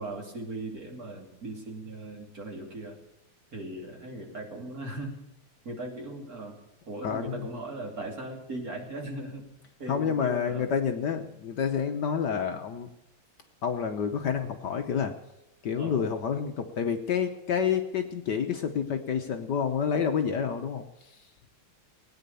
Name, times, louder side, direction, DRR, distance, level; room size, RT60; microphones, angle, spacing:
voice 1, 0.0-3.0 3.5-5.2 5.6-6.6 6.9-9.4 9.8-10.7 15.7-16.1, right 2 dB, 40° right, 1 dB, 3.2 m, -38 dB
voice 2, 7.0-7.4 9.9-12.9 13.6-15.1 15.6-21.2, left 7 dB, 60° left, 6 dB, 1.4 m, -29 dB
18.0 x 9.4 x 6.8 m, 0.94 s
omnidirectional pair, 2.3 m